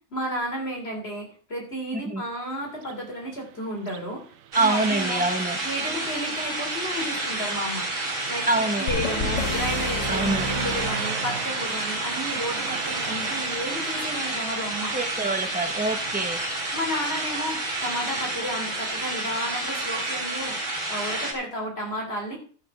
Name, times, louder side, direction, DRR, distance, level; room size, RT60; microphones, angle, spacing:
voice 1, 0.1-4.2 4.6-5.2 5.6-7.9 8.3-15.0 16.7-22.4, equal, 50° left, 1 dB, 3.7 m, -32 dB
Car passing by, 2.7-18.6, right 10 dB, 90° right, 1.1 m, -39 dB
voice 2, 4.5-5.6 8.5-8.9 10.1-10.5 14.9-16.4, right 2 dB, 5° right, 6 dB, 1.0 m, -25 dB
sound 1, 4.5-21.3, right 2 dB, 70° right, 2.5 m, -30 dB
sound 2, 8.9-11.7, left 4 dB, 70° left, 1.4 m, -31 dB
12.0 x 6.0 x 6.1 m, 0.43 s
omnidirectional pair, 1.4 m